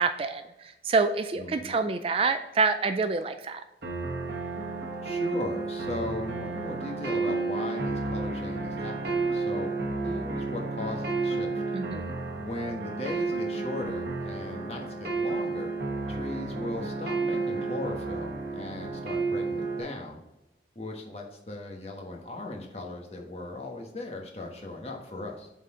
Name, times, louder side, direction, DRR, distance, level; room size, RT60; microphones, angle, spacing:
voice 1, 0.0-3.6 11.7-12.2, right 4 dB, 30° right, 8 dB, 0.3 m, -27 dB
voice 2, 1.4-1.8 5.0-9.7 10.0-11.6 12.4-15.7 16.1-20.2 20.7-25.5, left 2 dB, 35° left, 1 dB, 1.2 m, -38 dB
sound 1, 3.8-19.8, right 3 dB, 60° right, 1.1 m, -31 dB
7.8 x 4.1 x 3.7 m, 0.95 s
head